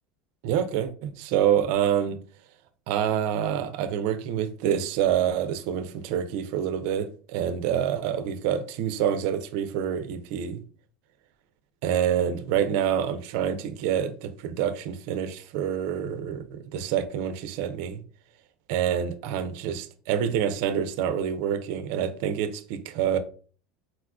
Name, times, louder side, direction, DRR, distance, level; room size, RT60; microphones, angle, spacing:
voice 1, 0.4-2.2 2.9-10.6 11.8-18.0 18.7-23.2, right 9 dB, 70° right, 0.3 m, -27 dB
4.1 x 2.2 x 2.4 m
supercardioid pair, 125°, 0 cm